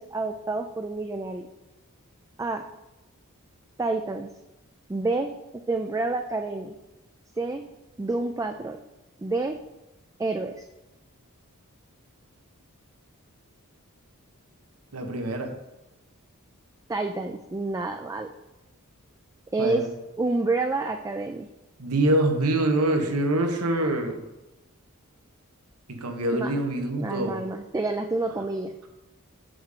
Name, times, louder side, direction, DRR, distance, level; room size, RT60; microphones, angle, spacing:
voice 1, 0.0-1.5 2.4-2.7 3.8-4.3 4.9-5.3 5.7-6.7 7.4-7.6 8.0-8.8 9.2-9.6 10.2-10.7 16.9-18.3 19.5-19.8 20.2-21.5 26.3-26.5 27.0-28.7, right 3 dB, 15° right, 5 dB, 0.3 m, -28 dB
voice 2, 14.9-15.6 19.6-19.9 21.8-24.2 25.9-27.5 28.4-28.5, right 1 dB, 85° right, 4 dB, 1.2 m, -25 dB
6.1 x 4.9 x 6.6 m, 1.0 s
head